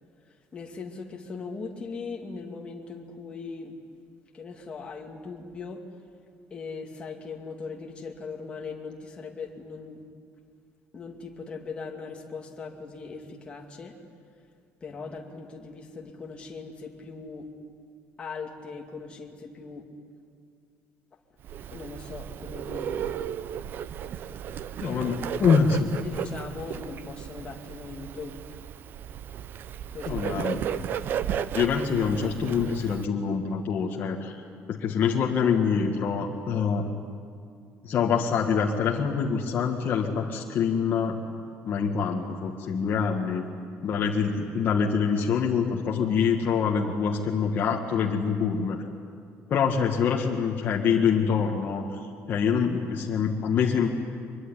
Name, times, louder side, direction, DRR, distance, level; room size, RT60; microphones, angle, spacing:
voice 1, 0.5-3.8 4.3-5.8 6.5-10.0 10.9-14.0 14.8-17.5 18.2-19.8 21.7-23.1 24.8-25.0 25.5-25.6 25.9-28.4 29.9-30.2 30.9-31.0, left 4 dB, 20° left, 1 dB, 2.4 m, -39 dB
Bird, 21.4-33.1, right 9 dB, 40° right, 0.6 m, -34 dB
voice 2, 24.8-25.8 30.0-30.6 31.5-34.4 34.7-36.9 37.8-41.2 41.6-43.4 43.8-48.9 49.5-51.9 52.3-53.9, left 6 dB, 40° left, 0 dB, 1.7 m, -25 dB
24.0 x 22.5 x 9.9 m, 2.3 s
cardioid pair, 180°, 5 cm